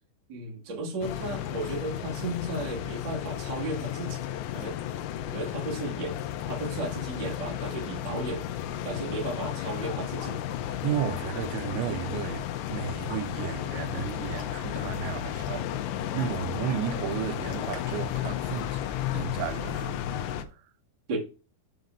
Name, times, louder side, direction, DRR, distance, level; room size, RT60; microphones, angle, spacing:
voice 1, 0.3-4.2 4.5-4.7 5.3-6.1 6.5-8.4 8.8-10.4 21.1-21.2, right 2 dB, 40° right, 1.7 m, -34 dB
sound 1, 1.0-20.4, left 11 dB, 85° left, 3.0 m, -33 dB
sound 2, 1.1-13.3 13.6-20.5, left 4 dB, 55° left, 1.7 m, -50 dB
voice 2, 10.8-18.9 19.1-20.0 20.5-20.6, right 11 dB, 85° right, 2.9 m, -34 dB
7.8 x 3.9 x 5.8 m
omnidirectional pair, 5.0 m